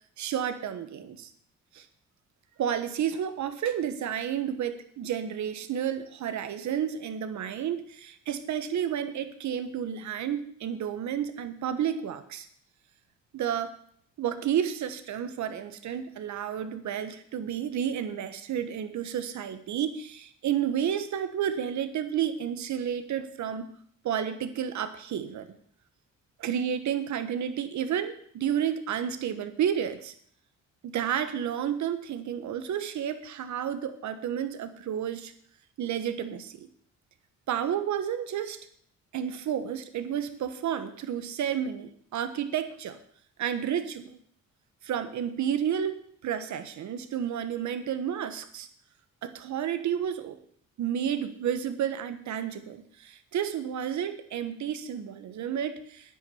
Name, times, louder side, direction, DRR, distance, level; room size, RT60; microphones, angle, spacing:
voice 1, 0.2-1.3 1.7-1.9 2.6-12.5 13.3-13.7 14.2-23.7 24.0-25.5 26.4-30.1 30.8-35.3 35.8-36.7 37.5-38.6 39.1-43.0 43.4-44.2 44.8-48.7 49.2-50.4 50.8-56.2, right 9 dB, 70° right, 11 dB, 1.3 m, -31 dB
10.0 x 9.3 x 7.1 m, 0.63 s
cardioid pair, 90°, 30 cm